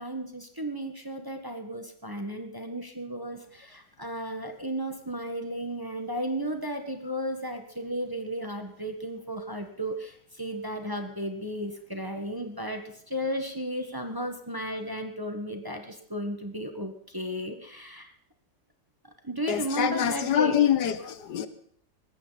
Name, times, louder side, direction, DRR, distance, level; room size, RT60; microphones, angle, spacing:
voice 1, 0.0-18.1 19.2-20.6, right 1 dB, 15° right, 4 dB, 1.4 m, -34 dB
voice 2, 19.5-21.5, left 10 dB, 75° left, 12 dB, 1.6 m, -25 dB
19.5 x 15.5 x 4.1 m, 0.63 s
omnidirectional pair, 1.8 m